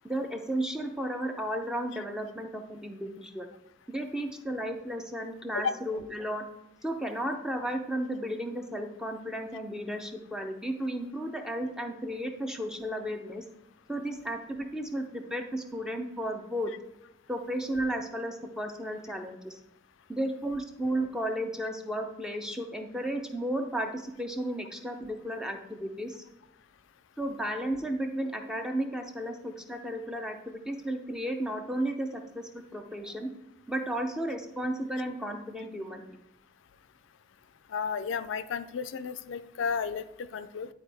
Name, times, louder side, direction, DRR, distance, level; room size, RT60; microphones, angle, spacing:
voice 1, 0.0-3.5 3.9-6.5 6.8-13.4 13.9-16.7 17.3-19.6 20.1-26.2 27.2-33.3 33.7-36.2, right 1 dB, 5° right, 4 dB, 0.5 m, -34 dB
voice 2, 37.7-40.7, left 6 dB, 85° left, 12 dB, 0.4 m, -33 dB
10.5 x 4.1 x 3.4 m, 0.89 s
head